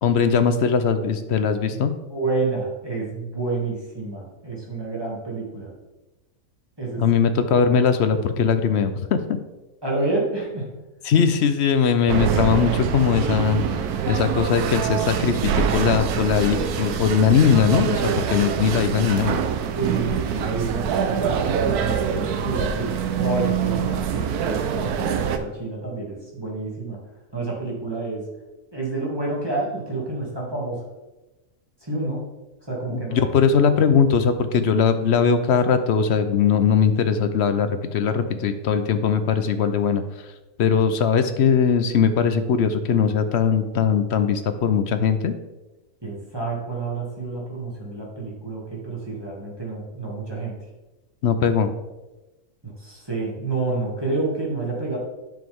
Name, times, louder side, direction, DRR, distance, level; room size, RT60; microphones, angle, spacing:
voice 1, 0.0-1.9 7.0-9.4 11.0-13.8 14.1-18.0 18.3-19.4 32.9-40.3 40.6-45.3 51.2-51.7, left 6 dB, 60° left, 10 dB, 0.7 m, -20 dB
voice 2, 2.1-5.7 6.8-7.1 9.8-10.7 18.0-18.2 18.5-18.8 19.8-27.0 27.3-28.3 28.7-30.8 31.8-32.3 32.7-33.2 46.0-50.6 52.6-55.0, right 3 dB, 15° right, -4 dB, 2.2 m, -29 dB
sound 1, 12.1-25.4, right 8 dB, 85° right, 1.2 m, -25 dB
9.4 x 6.9 x 3.6 m, 1.1 s
omnidirectional pair, 1.6 m